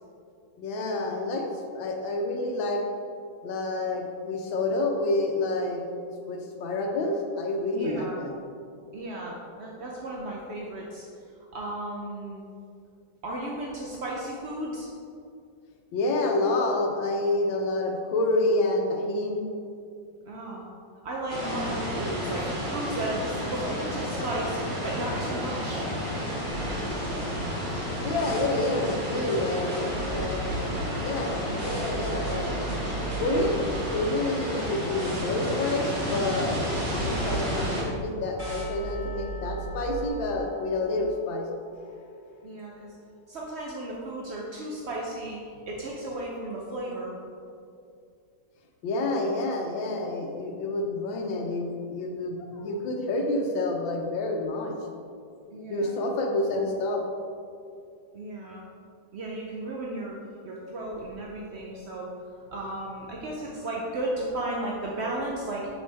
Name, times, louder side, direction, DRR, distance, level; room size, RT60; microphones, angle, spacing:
voice 1, 0.6-2.8 3.4-5.8 6.3-8.3 15.9-19.4 28.0-30.4 31.0-32.6 33.2-33.6 33.9-36.6 37.0-41.5 48.8-54.7 55.7-57.0, left 2 dB, 85° left, 2 dB, 1.6 m, -28 dB
voice 2, 7.7-8.2 8.9-11.1 11.5-12.4 13.2-14.9 20.3-20.6 21.0-25.9 42.4-42.9 43.3-45.4 45.7-47.2 55.5-56.0 58.1-58.6 59.1-60.2 60.4-62.1 62.5-65.7, right 1 dB, 65° right, -3 dB, 0.6 m, -34 dB
sound 1, 21.3-37.8, equal, 35° right, 2.1 m, -31 dB
sound 2, 26.5-40.1, right 3 dB, 90° right, 2.1 m, -38 dB
Percussion / Church bell, 38.4-43.4, left 5 dB, 65° left, 0.5 m, -49 dB
7.1 x 6.3 x 3.4 m, 2.4 s
omnidirectional pair, 2.0 m